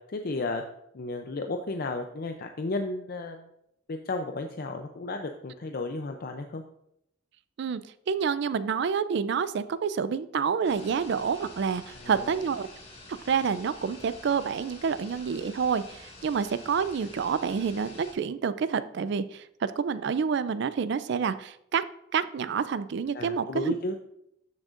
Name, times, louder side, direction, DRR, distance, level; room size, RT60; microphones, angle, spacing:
voice 1, 0.1-0.6 0.9-3.5 3.9-6.6 11.9-12.4 23.1-23.9, left 2 dB, 50° left, 5 dB, 0.5 m, -33 dB
voice 2, 8.1-12.7 13.1-21.8 22.1-23.7, right 6 dB, 60° right, 14 dB, 0.4 m, -28 dB
sound 1, 10.6-18.1, left 2 dB, 30° left, 1.9 m, -48 dB
13.0 x 6.2 x 2.5 m, 0.77 s
head